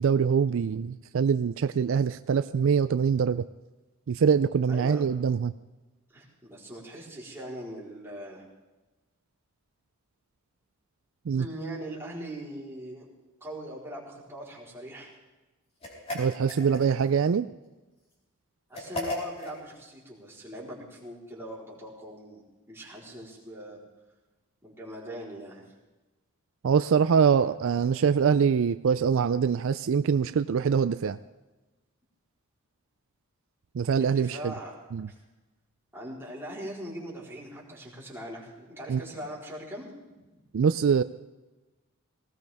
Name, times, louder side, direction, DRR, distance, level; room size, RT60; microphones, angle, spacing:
voice 1, 0.0-3.5 4.1-5.5 11.3-11.5 16.1-17.5 26.6-31.2 33.7-34.5 34.9-35.1 38.9-39.0 40.5-41.0, right 6 dB, 65° right, 12 dB, 0.4 m, -24 dB
voice 2, 4.7-5.0 6.1-8.4 11.4-13.1 13.4-15.1 18.7-22.4 22.7-23.8 24.6-25.6 34.0-34.7 35.1-35.2 35.9-39.9 40.3-40.4, right 1 dB, 10° right, -5 dB, 4.0 m, -41 dB
Opening a jar, 15.8-17.1 18.7-19.6, left 1 dB, 30° left, 4.2 m, -35 dB
19.0 x 18.0 x 3.5 m, 1.1 s
head